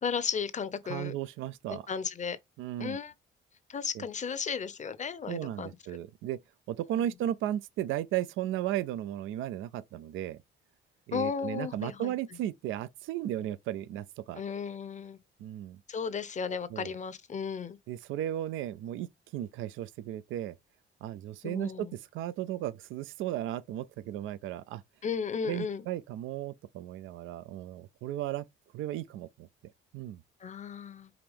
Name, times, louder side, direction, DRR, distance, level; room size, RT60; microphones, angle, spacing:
voice 1, 0.0-1.2 1.7-2.4 2.8-3.1 3.7-5.7 7.0-7.1 11.1-12.1 14.4-15.2 15.9-17.8 21.4-21.9 25.0-25.8 30.4-31.1, left 6 dB, 35° left, 0.7 m, -34 dB
voice 2, 0.8-1.9 2.6-3.0 3.9-4.0 5.3-6.4 6.7-10.4 11.1-14.4 15.4-15.8 16.7-16.9 17.9-20.5 21.0-24.8 25.4-28.5 28.7-29.5 29.9-30.2, right 12 dB, 85° right, 0.4 m, -35 dB
4.9 x 2.9 x 3.5 m
cardioid pair, 90°, 20 cm